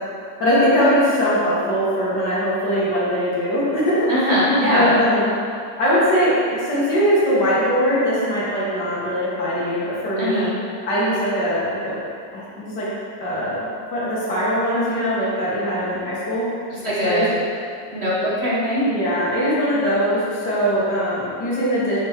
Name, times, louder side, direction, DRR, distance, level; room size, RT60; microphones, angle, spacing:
voice 1, 0.4-4.3 4.6-5.3 5.8-10.5 10.8-12.0 12.3-12.9 13.2-13.7 13.9-16.4 16.8-17.3 18.9-22.0, equal, 65° left, -8 dB, 2.3 m, -21 dB
voice 2, 4.1-5.0 10.2-10.5 16.8-17.3 17.9-18.9, equal, 40° right, -8 dB, 1.4 m, -20 dB
7.2 x 4.4 x 4.6 m, 2.4 s
omnidirectional pair, 2.0 m